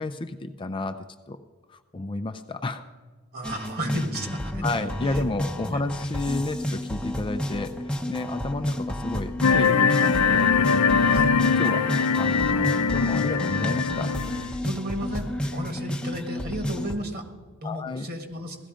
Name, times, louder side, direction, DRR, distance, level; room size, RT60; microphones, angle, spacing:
voice 1, 0.0-1.4 1.9-2.8 4.6-7.8 8.1-11.1 11.6-11.9 12.2-14.2 17.6-18.1, left 2 dB, 20° left, 8 dB, 0.5 m, -31 dB
voice 2, 3.3-4.7 5.1-5.2 5.7-5.8 11.1-11.3 14.6-17.2 17.6-18.6, equal, 45° right, 6 dB, 1.7 m, -33 dB
sound 1, 3.4-17.0, equal, 5° left, 0.9 m, -31 dB
sound 2, 9.4-14.5, left 5 dB, 85° left, 0.6 m, -22 dB
16.5 x 13.0 x 5.0 m, 1.4 s
head